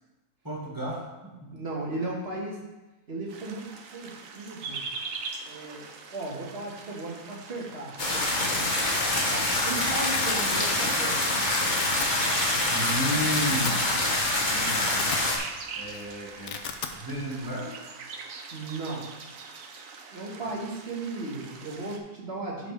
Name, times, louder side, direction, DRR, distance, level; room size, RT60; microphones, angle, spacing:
voice 1, 0.4-1.5 12.7-14.0 14.5-15.0 15.7-16.6 16.9-17.8, equal, 15° right, -6 dB, 1.9 m, -33 dB
voice 2, 1.5-2.6 3.1-4.1 4.4-4.9 5.5-7.9 9.0-11.3 18.5-19.1 20.1-22.7, right 2 dB, 40° right, -3 dB, 1.9 m, -36 dB
sound 1, 3.3-22.0, right 4 dB, 60° right, 1.2 m, -42 dB
sound 2, 8.0-15.4, left 1 dB, 30° left, 1.3 m, -25 dB
Domestic sounds home sounds, 9.0-9.4 9.6-10.5 10.9-11.2 11.5-12.1 12.7-12.8 13.1-13.8 14.2-14.3 14.7-15.6 15.8-16.0 16.3-16.9, left 7 dB, 60° left, 0.8 m, -36 dB
11.5 x 5.0 x 3.4 m, 1.1 s
omnidirectional pair, 1.6 m